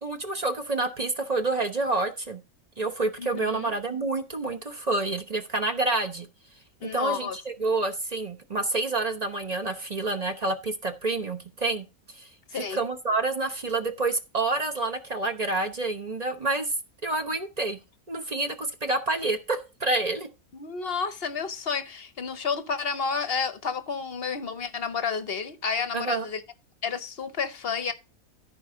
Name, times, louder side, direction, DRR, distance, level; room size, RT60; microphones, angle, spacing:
voice 1, 0.0-2.4 2.8-6.3 6.8-11.8 12.1-16.7 17.0-17.8 18.1-20.3 25.9-26.3, right 2 dB, 30° right, 1.0 m, -28 dB
voice 2, 3.2-3.7 6.8-7.3 12.5-12.8 20.5-26.4 26.8-27.9, left 5 dB, 50° left, 0.9 m, -31 dB
14.0 x 4.8 x 3.8 m
omnidirectional pair, 1.6 m